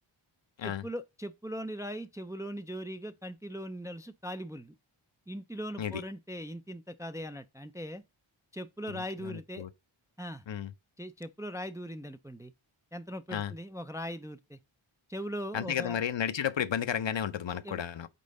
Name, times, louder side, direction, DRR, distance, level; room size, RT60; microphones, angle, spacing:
voice 1, 0.6-4.8 5.3-8.0 8.5-9.7 10.2-10.4 11.0-12.5 12.9-14.6 15.1-16.0 17.6-17.8, equal, 5° right, 0.4 m, -40 dB
voice 2, 8.9-9.7 10.5-10.7 13.3-13.5 15.5-18.1, left 9 dB, 65° left, 0.6 m, -33 dB
5.4 x 3.8 x 5.2 m
wide cardioid pair, 55°, 49 cm